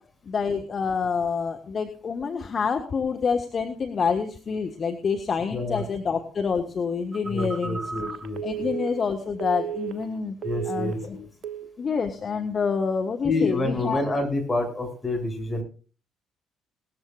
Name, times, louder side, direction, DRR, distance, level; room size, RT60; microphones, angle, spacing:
voice 1, 0.2-7.8 8.4-10.4 10.7-11.2 11.8-14.0, left 5 dB, 40° left, 4 dB, 1.7 m, -27 dB
voice 2, 5.5-5.8 7.3-8.7 10.4-11.3 13.2-15.6, left 2 dB, 20° left, 3 dB, 7.1 m, -28 dB
Telephone, 7.1-10.2 10.4-11.1 11.4-11.7, right 8 dB, 50° right, 1.4 m, -34 dB
19.5 x 14.0 x 2.5 m, 0.38 s
figure-of-eight pair, 45°, 0 cm